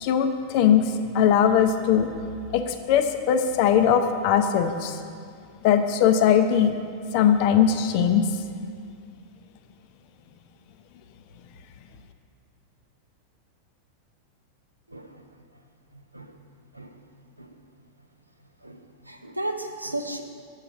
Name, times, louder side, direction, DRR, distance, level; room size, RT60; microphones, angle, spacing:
voice 1, 0.0-2.1 2.5-5.0 5.6-6.7 7.1-8.3, left 8 dB, 45° left, 7 dB, 0.6 m, -20 dB
voice 2, 18.6-20.2, right 1 dB, 85° right, 5 dB, 0.6 m, -34 dB
6.9 x 5.7 x 6.3 m, 2.3 s
figure-of-eight pair, 90°, 0 cm